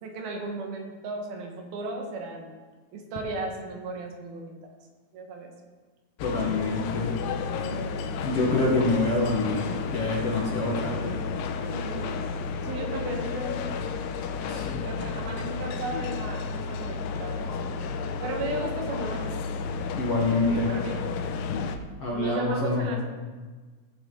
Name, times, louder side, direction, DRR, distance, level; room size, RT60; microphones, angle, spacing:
voice 1, 0.0-2.5 2.9-4.5 5.1-5.5 7.6-7.9 11.7-12.2 12.6-14.0 14.2-17.6 18.2-19.4 20.2-21.2 22.1-23.0, right 2 dB, 80° right, 2 dB, 3.2 m, -36 dB
sound 1, 6.2-21.8, left 5 dB, 80° left, 2.2 m, -32 dB
voice 2, 6.2-7.1 8.2-11.2 14.5-14.8 19.9-20.8 22.0-22.9, left 2 dB, 55° left, -3 dB, 1.8 m, -26 dB
17.0 x 7.3 x 3.8 m, 1.4 s
omnidirectional pair, 4.3 m